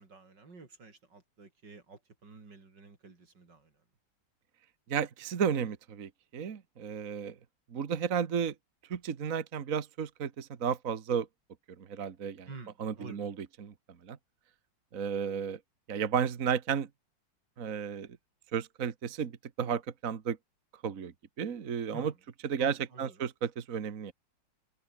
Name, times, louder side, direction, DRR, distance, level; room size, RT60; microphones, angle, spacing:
voice 1, 0.0-3.8 12.5-13.3 21.9-22.2 22.6-23.2, right 4 dB, 85° right, 4.4 m, -50 dB
voice 2, 4.9-7.4 7.7-8.5 8.9-11.3 11.8-12.5 12.8-13.3 13.6-13.7 14.0-14.2 14.9-15.6 15.9-16.9 17.6-18.1 18.5-19.3 19.6-20.4 20.8-21.1 21.4-22.1 22.5-24.1, right 7 dB, 50° right, 1.7 m, -33 dB
omnidirectional pair, 1.9 m